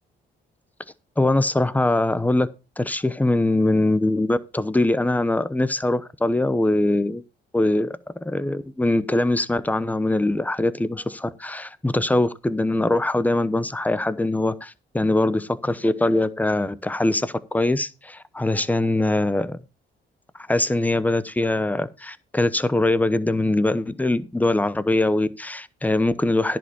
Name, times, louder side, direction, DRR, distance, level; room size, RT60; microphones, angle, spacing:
voice 1, 1.2-2.5 2.8-7.2 7.5-8.0 8.2-19.6 20.5-26.6, left 2 dB, 10° left, 0.9 m, -22 dB
10.5 x 5.3 x 6.9 m
cardioid pair, 90°, 20 cm